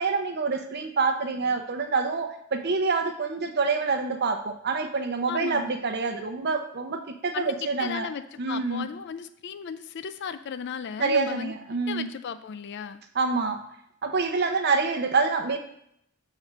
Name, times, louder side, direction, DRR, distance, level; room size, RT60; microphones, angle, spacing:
voice 1, 0.0-8.1 8.4-8.9 11.0-12.1 13.1-13.6 14.0-15.6, right 4 dB, 50° right, 5 dB, 0.8 m, -26 dB
voice 2, 5.3-5.8 7.3-7.5 7.8-11.5 11.9-13.0, left 7 dB, 55° left, 11 dB, 0.4 m, -35 dB
6.5 x 4.2 x 6.1 m, 0.73 s
head